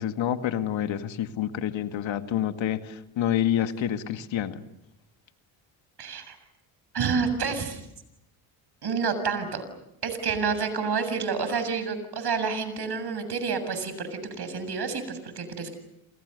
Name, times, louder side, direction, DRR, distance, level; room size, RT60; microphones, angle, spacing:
voice 1, 0.0-4.6, left 10 dB, 65° left, 8 dB, 2.2 m, -28 dB
voice 2, 6.0-6.4 6.9-7.9 8.8-9.6 10.0-15.7, right 5 dB, 50° right, 10 dB, 7.3 m, -29 dB
29.0 x 28.0 x 6.8 m, 0.83 s
supercardioid pair, 75°, 49 cm